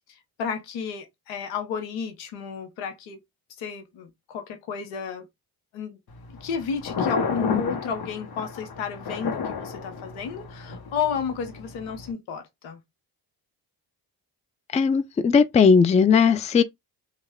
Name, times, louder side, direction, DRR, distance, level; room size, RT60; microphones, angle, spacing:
voice 1, 0.1-3.2 3.6-5.3 5.7-6.0 6.3-12.8, left 6 dB, 85° left, 0.9 m, -32 dB
Thunder, 6.1-12.1, left 5 dB, 50° left, 1.0 m, -32 dB
voice 2, 14.7-16.6, left 6 dB, 15° left, 0.3 m, -18 dB
3.0 x 2.3 x 3.5 m
hypercardioid pair, 45°, 47 cm